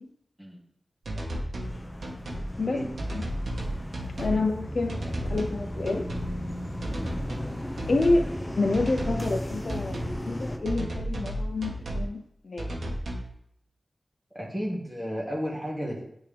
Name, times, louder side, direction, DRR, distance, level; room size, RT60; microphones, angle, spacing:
sound 1, 1.0-1.7 2.0-2.5 3.0-4.4 4.9-5.6 5.9-6.3 6.8-7.5 7.8-8.3 8.7-9.4 9.7-10.2 10.7-12.1 12.6-13.3, right 1 dB, 85° right, 1.4 m, -33 dB
sound 2, 1.6-10.6, left 1 dB, 15° left, 0.7 m, -37 dB
sound 3, 3.6-11.9, equal, 45° left, 1.6 m, -43 dB
voice 1, 4.2-6.1 7.9-8.3 8.5-12.7, left 2 dB, 65° left, 6 dB, 0.8 m, -28 dB
voice 2, 14.3-16.0, equal, 5° right, -5 dB, 2.3 m, -33 dB
10.5 x 3.7 x 3.5 m, 0.73 s
wide cardioid pair, 90°, 0 cm